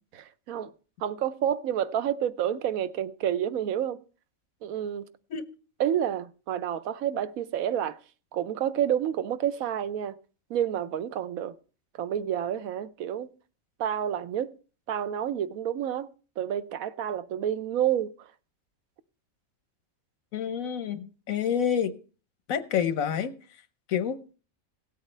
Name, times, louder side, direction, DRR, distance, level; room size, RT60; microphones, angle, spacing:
voice 1, 1.0-4.0 4.6-5.1 5.8-8.0 8.3-10.2 10.5-11.5 12.0-13.3 13.8-14.5 14.9-16.1 16.4-18.1, right 10 dB, 90° right, 1.1 m, -29 dB
voice 2, 20.3-21.9 22.5-23.3 23.9-24.2, left 8 dB, 80° left, 1.3 m, -28 dB
17.0 x 8.2 x 3.2 m
omnidirectional pair, 1.4 m